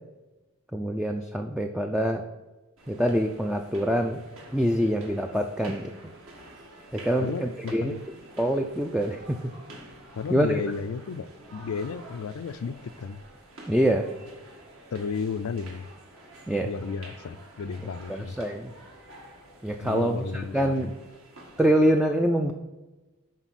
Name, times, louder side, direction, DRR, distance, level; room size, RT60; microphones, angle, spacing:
voice 1, 0.7-2.2 2.9-4.2 4.5-6.1 6.9-7.9 8.4-9.5 10.3-10.6 13.7-14.1 16.5-16.7 18.1-18.7 19.6-20.9 21.6-22.5, equal, 5° right, 3 dB, 0.3 m, -25 dB
sound 1, 2.8-21.7, right 1 dB, 65° right, 1.9 m, -49 dB
voice 2, 7.2-8.0 10.1-11.3 11.5-13.2 14.9-15.9 16.6-18.4 19.8-20.9, left 5 dB, 70° left, 14 dB, 0.4 m, -33 dB
12.0 x 4.4 x 4.1 m, 1.1 s
head